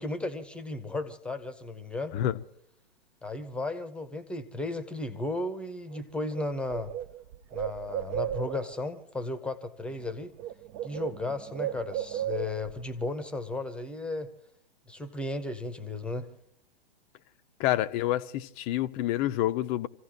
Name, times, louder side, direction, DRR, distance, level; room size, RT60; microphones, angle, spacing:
voice 1, 0.0-2.1 3.2-6.9 7.5-10.3 10.8-14.3 14.9-16.3, left 2 dB, 5° left, 0.9 m, -35 dB
Bird, 5.9-6.0 6.3-8.8 9.9-10.1 10.4-12.8, right 11 dB, 30° right, 0.6 m, -35 dB
voice 2, 17.6-19.9, left 14 dB, 25° left, 0.6 m, -28 dB
27.5 x 16.0 x 2.9 m
figure-of-eight pair, 110°, 29 cm